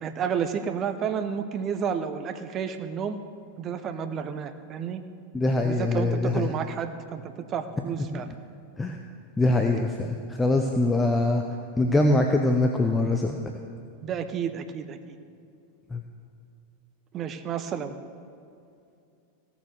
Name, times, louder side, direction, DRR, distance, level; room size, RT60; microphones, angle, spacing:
voice 1, 0.0-3.2 3.6-5.0 5.6-8.3 14.0-15.2 17.1-17.9, right 7 dB, 30° right, 9 dB, 0.8 m, -31 dB
voice 2, 5.3-6.5 8.1-8.2 8.8-9.0 9.4-11.4 11.8-13.4 15.9-16.0, left 2 dB, 10° left, 3 dB, 0.8 m, -23 dB
16.0 x 7.0 x 6.4 m, 2.5 s
figure-of-eight pair, 90°, 0 cm